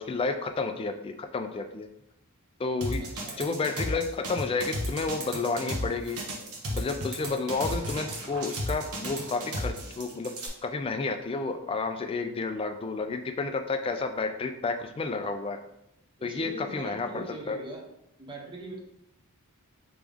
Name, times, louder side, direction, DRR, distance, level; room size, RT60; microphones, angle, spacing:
voice 1, 0.0-1.9 2.6-3.1 3.4-6.2 6.7-10.3 10.6-15.6 16.2-17.6, left 4 dB, 25° left, 7 dB, 0.3 m, -31 dB
sound 1, 2.8-10.5, equal, 80° right, 0.9 m, -33 dB
voice 2, 3.0-3.6 16.2-17.8 18.2-18.8, right 1 dB, 20° right, 0 dB, 0.7 m, -42 dB
3.4 x 3.0 x 3.5 m, 0.83 s
head